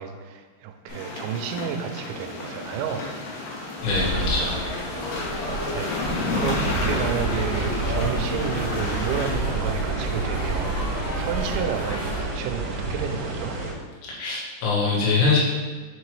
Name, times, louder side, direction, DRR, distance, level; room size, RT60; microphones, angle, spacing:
voice 1, 0.0-3.1 5.4-13.6, right 8 dB, 85° right, 6 dB, 2.9 m, -31 dB
sound 1, 0.9-9.3, left 2 dB, 70° left, 2.8 m, -32 dB
voice 2, 3.8-4.6 14.1-15.4, left 4 dB, 85° left, -4 dB, 3.9 m, -23 dB
sound 2, 3.8-12.2, right 1 dB, 55° left, 2.1 m, -31 dB
sound 3, 6.3-13.7, right 3 dB, 70° right, 2.2 m, -30 dB
6.7 x 5.0 x 3.2 m, 1.5 s
omnidirectional pair, 5.3 m